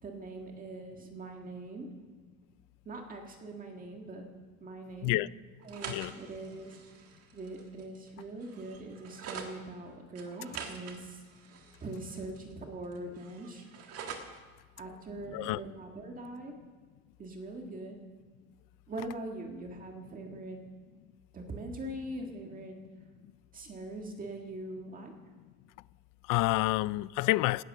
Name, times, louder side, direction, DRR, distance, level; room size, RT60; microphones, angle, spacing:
voice 1, 0.0-1.9 2.9-4.3 4.6-5.1 5.7-11.2 11.8-13.7 14.8-16.5 17.2-18.0 18.9-20.6 21.3-22.7 23.5-25.1, right 2 dB, 25° right, 1.8 m, -42 dB
sound 1, 5.6-9.5 10.2-12.5 12.8-14.4, right 6 dB, 45° right, 1.8 m, -46 dB
voice 2, 26.2-27.6, left 19 dB, 75° left, 0.5 m, -28 dB
17.5 x 11.5 x 6.7 m
cardioid pair, 175°, 32 cm